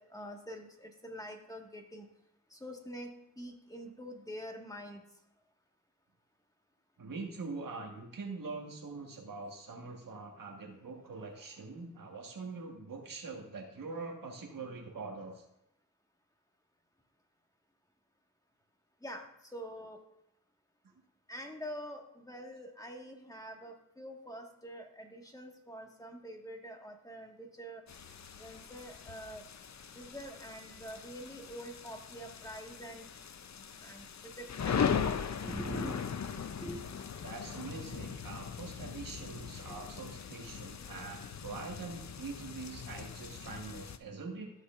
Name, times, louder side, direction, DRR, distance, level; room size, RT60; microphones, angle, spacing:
voice 1, 0.0-2.1 2.5-5.0 19.0-19.2 19.5-20.0 21.3-27.8 28.4-29.4 29.9-33.1 33.8-34.8 35.4-36.0 36.6-36.8 39.7-39.8, equal, 10° left, 2 dB, 1.7 m, -45 dB
voice 2, 7.0-15.4 37.2-44.5, right 4 dB, 85° right, 1 dB, 1.6 m, -43 dB
sound 1, 27.9-44.0, left 7 dB, 60° left, 0.6 m, -39 dB
14.0 x 6.4 x 2.5 m, 0.83 s
cardioid pair, 50°, 32 cm